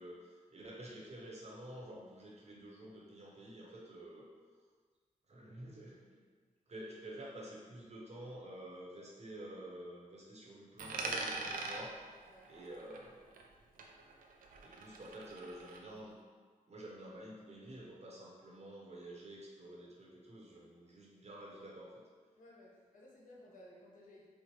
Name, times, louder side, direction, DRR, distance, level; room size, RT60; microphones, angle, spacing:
voice 1, 0.0-4.3 5.3-6.2 6.7-13.2 14.6-16.2 16.7-22.0, right 1 dB, 50° right, -3 dB, 0.9 m, -50 dB
Coin (dropping), 10.8-13.5 13.8-15.8, right 3 dB, 90° right, 0.4 m, -43 dB
voice 2, 12.2-12.6 22.4-24.3, left 1 dB, 75° left, -5 dB, 1.0 m, -58 dB
4.5 x 2.1 x 3.0 m, 1.5 s
cardioid pair, 70°, 14 cm